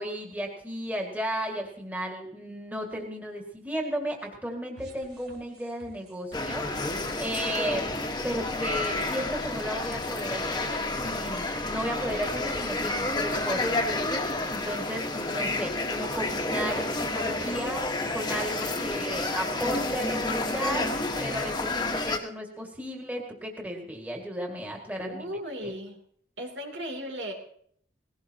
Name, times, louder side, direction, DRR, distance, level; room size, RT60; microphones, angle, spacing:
voice 1, 0.0-7.9 8.2-10.8 11.0-20.8 21.2-25.3 25.6-25.7, equal, 10° right, 0 dB, 2.1 m, -34 dB
sound 1, 4.8-13.0, right 1 dB, 65° right, 3.5 m, -52 dB
sound 2, 6.3-22.2, left 2 dB, 25° left, 1.4 m, -30 dB
voice 2, 25.0-26.0 26.4-27.3, equal, 80° right, 2 dB, 3.1 m, -36 dB
19.0 x 17.0 x 2.9 m, 0.62 s
head